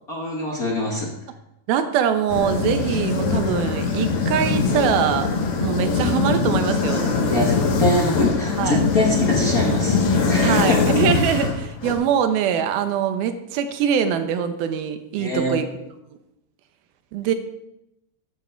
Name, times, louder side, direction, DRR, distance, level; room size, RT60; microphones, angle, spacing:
voice 1, 0.1-1.1 7.3-10.0 10.3-10.8 15.2-15.6, left 2 dB, 65° left, -2 dB, 0.8 m, -23 dB
voice 2, 1.7-5.3 5.6-7.1 8.6-8.8 10.4-15.7 17.1-17.3, right 8 dB, 85° right, 9 dB, 2.8 m, -23 dB
sound 1, 2.3-11.9, left 4 dB, 85° left, 3.6 m, -22 dB
15.0 x 9.9 x 4.5 m, 0.87 s
omnidirectional pair, 4.2 m